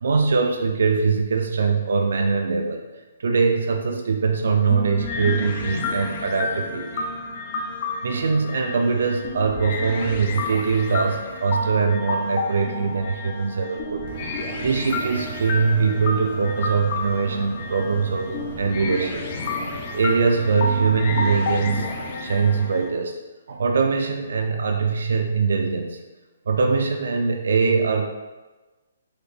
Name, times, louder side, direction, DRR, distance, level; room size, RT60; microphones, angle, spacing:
voice 1, 0.0-2.8 3.2-7.1 8.0-14.0 14.6-19.3 19.9-21.9 22.2-23.2 23.5-26.0 26.5-28.1, right 5 dB, 70° right, 4 dB, 0.4 m, -22 dB
sound 1, 4.7-22.9, left 3 dB, 40° left, 0.5 m, -30 dB
sound 2, 14.1-22.1, right 4 dB, 35° right, 0.8 m, -39 dB
4.1 x 3.1 x 2.4 m, 1.2 s
hypercardioid pair, 150°, 0 cm